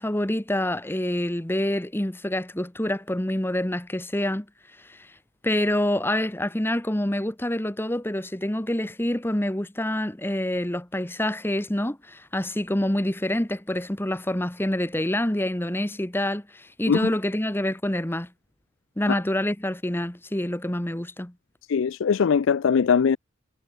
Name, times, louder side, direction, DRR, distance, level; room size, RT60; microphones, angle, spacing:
voice 1, 0.0-4.5 4.9-5.1 5.4-18.3 19.0-21.3, left 1 dB, 10° left, 1.1 m, -27 dB
voice 2, 21.7-23.2, left 6 dB, 70° left, 0.4 m, -21 dB
head